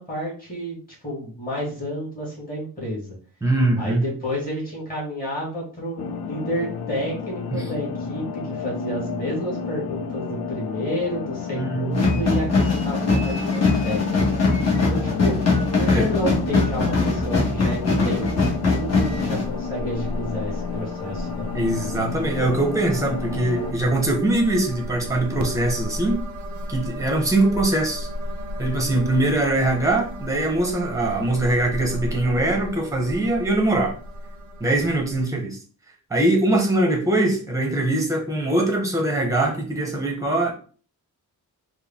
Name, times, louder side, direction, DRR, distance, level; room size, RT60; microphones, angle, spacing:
voice 1, 0.0-3.2 3.8-14.2 14.9-15.4 15.8-21.5, equal, 25° left, -5 dB, 2.0 m, -30 dB
voice 2, 3.4-4.0 7.5-7.6 11.5-12.2 15.8-16.0 21.5-26.2 26.7-28.1 28.6-34.0 34.6-35.6 36.1-40.5, right 2 dB, 10° right, 2 dB, 0.8 m, -22 dB
sound 1, 6.0-23.7, left 6 dB, 80° left, 0.6 m, -32 dB
sound 2, 11.9-19.5, left 3 dB, 40° left, 1.3 m, -21 dB
sound 3, 16.1-35.3, equal, 50° right, 0.5 m, -35 dB
4.4 x 2.2 x 3.5 m, 0.41 s
wide cardioid pair, 170°, 38 cm